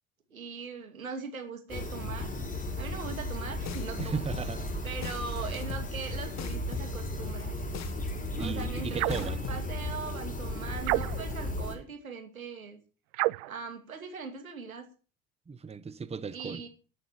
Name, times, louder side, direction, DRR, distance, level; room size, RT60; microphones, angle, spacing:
voice 1, 0.3-2.3 2.8-4.3 4.8-7.6 8.4-12.8 13.4-14.8 16.3-16.7, right 5 dB, 90° right, 2.5 m, -40 dB
sound 1, 1.7-11.8, left 1 dB, 20° left, 6.4 m, -35 dB
sound 2, 3.7-9.7, left 9 dB, 40° left, 1.6 m, -41 dB
voice 2, 4.0-4.8 8.3-9.5 15.5-16.6, right 5 dB, 15° right, 0.9 m, -36 dB
sound 3, 9.0-9.3 10.8-11.4 13.1-13.6, right 22 dB, 65° right, 0.6 m, -30 dB
11.5 x 10.0 x 6.7 m
hypercardioid pair, 65°, 41 cm